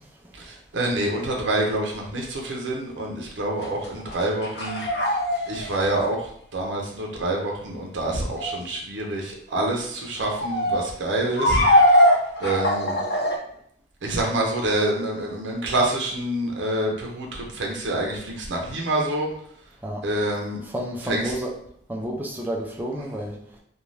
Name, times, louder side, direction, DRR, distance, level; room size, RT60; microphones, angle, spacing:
voice 1, 0.4-4.8 5.5-11.6 12.4-13.0 14.0-19.3 20.0-20.6 21.0-21.3, right 1 dB, 85° right, 0 dB, 0.5 m, -27 dB
sound 1, 3.6-6.0 8.3-8.6 10.2-10.8 11.3-13.4, left 1 dB, 65° left, 0.5 m, -21 dB
voice 2, 20.7-21.6 21.9-23.4, equal, 10° right, -1 dB, 0.4 m, -30 dB
2.5 x 2.2 x 3.1 m, 0.66 s
head